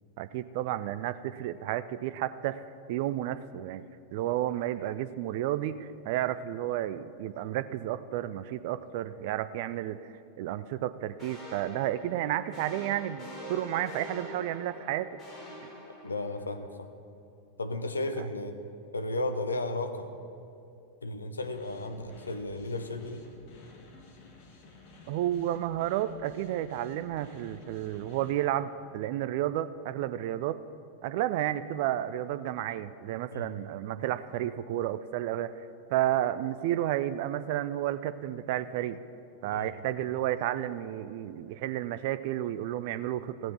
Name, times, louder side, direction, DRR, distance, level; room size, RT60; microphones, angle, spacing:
voice 1, 0.2-2.6 2.9-3.8 4.1-10.0 10.4-15.1 18.2-18.3 25.1-30.6 31.0-35.5 35.9-39.0 39.4-43.5, right 12 dB, 50° right, 13 dB, 0.4 m, -31 dB
sound 1, 11.2-16.5, equal, 25° left, 3.5 m, -45 dB
voice 2, 16.0-16.9 17.6-18.6 18.9-20.1 21.0-23.2 33.3-33.5 39.5-39.7, left 2 dB, 75° left, 8 dB, 0.8 m, -34 dB
sound 2, 21.4-28.3, left 3 dB, 45° left, 1.8 m, -54 dB
15.0 x 7.5 x 6.1 m, 2.7 s
figure-of-eight pair, 90°, 0 cm